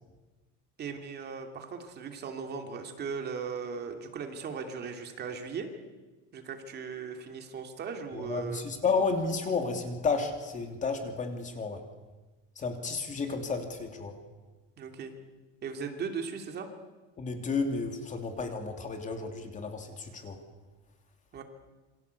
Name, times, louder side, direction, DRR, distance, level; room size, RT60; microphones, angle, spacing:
voice 1, 0.8-5.7 6.3-8.7 14.8-15.1 15.6-16.7 21.3-21.4, right 5 dB, 30° right, 5 dB, 2.8 m, -38 dB
voice 2, 8.1-11.8 12.6-14.2 17.2-20.4, left 4 dB, 25° left, 5 dB, 2.9 m, -32 dB
28.0 x 25.5 x 8.3 m, 1.2 s
cardioid pair, 170°, 31 cm